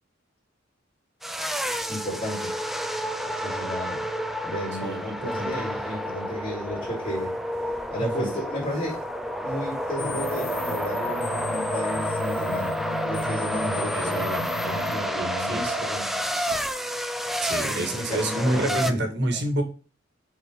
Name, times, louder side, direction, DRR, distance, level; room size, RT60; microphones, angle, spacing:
sound 1, 1.2-18.9, equal, ahead, 0.6 m, -29 dB
voice 1, 1.9-2.5 3.4-4.0 4.4-7.3 7.9-9.1 9.4-14.3 14.6-16.6 17.6-19.0 19.3-19.4, equal, 30° left, -2 dB, 4.7 m, -34 dB
voice 2, 4.8-5.6 8.0-8.4 13.9-14.4 15.1-15.8 17.4-19.6, right 1 dB, 60° right, 5 dB, 2.2 m, -28 dB
sound 2, 10.0-15.0, left 3 dB, 85° left, 1.5 m, -35 dB
8.1 x 4.8 x 5.3 m, 0.36 s
head